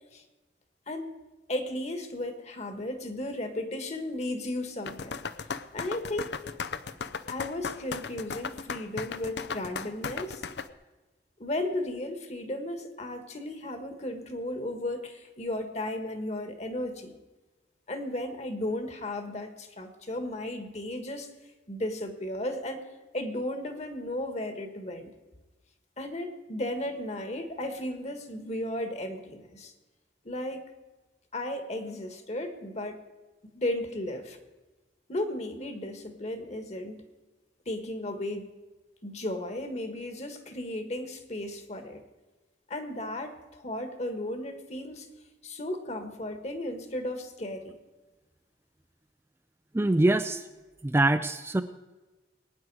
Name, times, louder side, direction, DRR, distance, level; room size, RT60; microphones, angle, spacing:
voice 1, 1.5-5.2 5.7-6.4 7.3-10.4 11.4-17.2 17.9-21.3 21.7-22.8 23.1-25.1 26.0-29.7 30.2-30.6 31.3-33.0 33.5-34.4 35.1-37.0 37.6-38.5 39.0-42.0 42.7-45.1 45.4-47.7, left 1 dB, 40° left, 7 dB, 1.6 m, -35 dB
sound 1, 4.8-10.7, left 5 dB, 75° left, 0.6 m, -36 dB
voice 2, 49.7-50.4 50.8-51.6, right 2 dB, 15° right, 9 dB, 0.4 m, -24 dB
21.5 x 9.7 x 4.8 m, 1.2 s
head